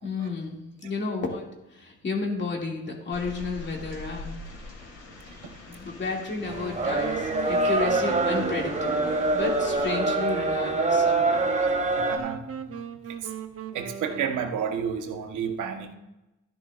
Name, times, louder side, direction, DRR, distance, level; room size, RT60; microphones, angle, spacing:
voice 1, 0.0-4.3 5.7-11.5, left 4 dB, 35° left, -1 dB, 2.4 m, -32 dB
sound 1, 3.1-10.0, left 2 dB, 55° left, 2.9 m, -44 dB
sound 2, 6.4-14.9, right 6 dB, 50° right, 0.9 m, -39 dB
sound 3, 6.5-12.2, right 3 dB, 25° right, 1.1 m, -25 dB
voice 2, 12.1-12.8 13.7-15.9, right 7 dB, 80° right, 5 dB, 1.2 m, -31 dB
13.0 x 10.5 x 2.5 m, 0.95 s
cardioid pair, 90°, 30 cm